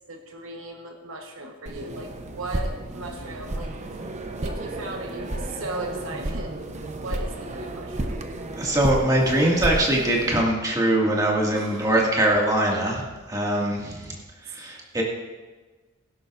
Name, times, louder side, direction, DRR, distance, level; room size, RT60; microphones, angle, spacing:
voice 1, 0.1-3.7 4.4-6.6 7.0-8.2 11.5-12.0 13.7-13.8, right 2 dB, 80° right, 3 dB, 1.2 m, -37 dB
sound 1, 1.7-10.4, right 1 dB, 35° right, 0.8 m, -32 dB
voice 2, 8.6-15.0, right 1 dB, 20° right, -3 dB, 2.1 m, -22 dB
18.0 x 11.0 x 2.6 m, 1.3 s
head